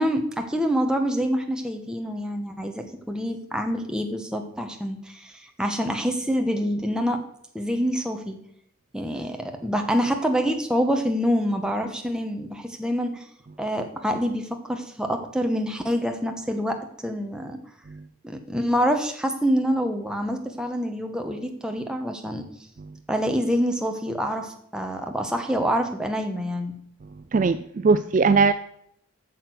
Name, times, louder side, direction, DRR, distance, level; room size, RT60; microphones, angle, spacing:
voice 1, 0.0-7.2 7.5-8.4 8.9-13.3 13.6-17.6 18.2-22.5 23.1-26.7, equal, 5° right, 4 dB, 1.0 m, -26 dB
voice 2, 27.3-28.5, right 4 dB, 35° right, 12 dB, 0.3 m, -19 dB
8.6 x 6.7 x 7.8 m, 0.72 s
head